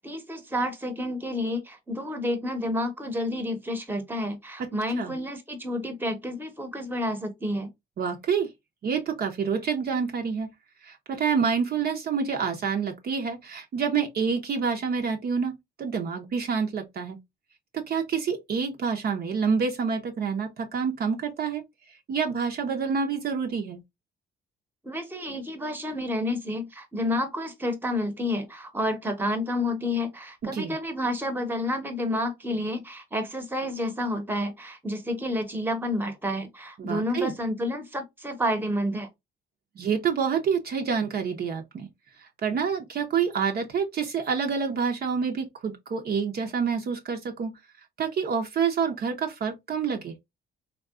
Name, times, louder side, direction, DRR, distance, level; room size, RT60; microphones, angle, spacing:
voice 1, 0.0-7.7 24.8-39.1, left 1 dB, 10° right, 0.9 m, -30 dB
voice 2, 8.0-8.5 8.8-10.5 10.8-17.2 17.7-21.6 22.1-23.8 30.4-30.7 36.8-37.3 39.8-41.9 42.2-47.5 48.0-50.1, right 6 dB, 50° right, 0.7 m, -27 dB
3.6 x 2.3 x 2.3 m
cardioid pair, 90°, 20 cm